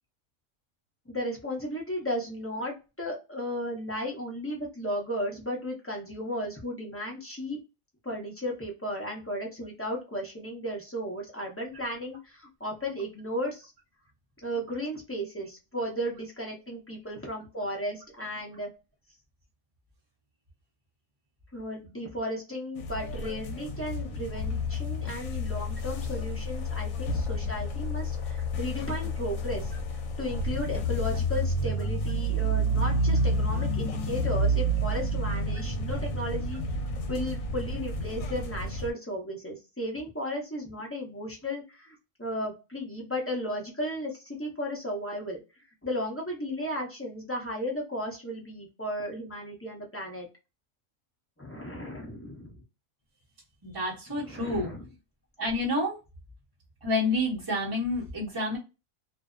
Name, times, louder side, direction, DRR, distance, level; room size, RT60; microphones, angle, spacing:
voice 1, 1.1-7.6 8.0-13.7 14.4-18.7 21.5-29.7 30.2-36.6 37.1-45.4 45.8-50.3 51.4-52.6 54.3-54.8, equal, 15° left, -2 dB, 0.6 m, -35 dB
sound 1, 22.8-38.9, equal, 75° left, 1.0 m, -30 dB
voice 2, 53.6-54.7 55.4-56.0 56.8-58.6, left 1 dB, 20° right, -7 dB, 0.8 m, -29 dB
2.6 x 2.1 x 2.4 m, 0.28 s
omnidirectional pair, 1.4 m